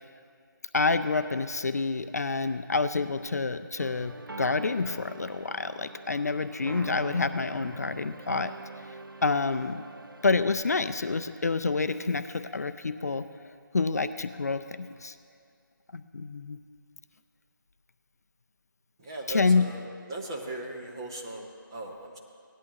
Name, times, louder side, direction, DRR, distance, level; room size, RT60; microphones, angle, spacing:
voice 1, 0.7-8.5 9.2-9.8 10.2-13.3 13.7-15.1 15.9-16.6 19.3-19.7, left 4 dB, 45° left, 10 dB, 0.4 m, -28 dB
sound 1, 3.8-10.4, right 2 dB, 80° right, 0.7 m, -43 dB
voice 2, 19.0-22.2, right 1 dB, 10° right, -1 dB, 0.6 m, -38 dB
18.0 x 11.0 x 2.9 m, 2.3 s
figure-of-eight pair, 170°, 11 cm